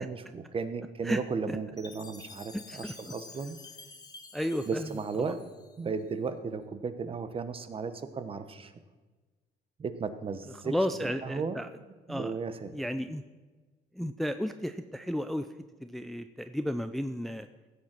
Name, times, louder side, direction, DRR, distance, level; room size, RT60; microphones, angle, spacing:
voice 1, 0.0-3.6 4.7-5.4 5.8-8.7 9.8-10.7 11.0-11.6 12.1-12.7, right 5 dB, 35° right, 10 dB, 1.1 m, -35 dB
Chime, 1.8-6.0, left 3 dB, 25° left, 1.2 m, -50 dB
voice 2, 2.5-2.9 4.3-4.9 5.2-5.3 10.6-11.7 12.1-12.3 12.7-13.2 13.9-15.5 15.8-17.5, equal, ahead, 9 dB, 0.5 m, -33 dB
16.0 x 7.5 x 6.0 m, 1.3 s
cardioid pair, 110°, 17 cm